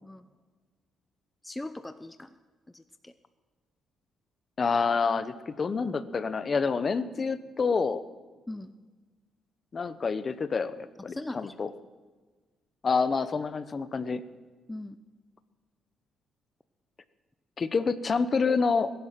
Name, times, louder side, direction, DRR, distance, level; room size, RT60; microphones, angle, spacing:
voice 1, 1.4-2.3 2.7-3.1 8.5-8.7 11.1-11.6 14.7-15.0, left 1 dB, 10° left, 11 dB, 0.7 m, -40 dB
voice 2, 4.6-8.0 9.7-11.7 12.8-14.2 17.6-18.9, left 5 dB, 40° left, 14 dB, 0.9 m, -27 dB
21.0 x 11.0 x 5.9 m, 1.3 s
cardioid pair, 90°, 0 cm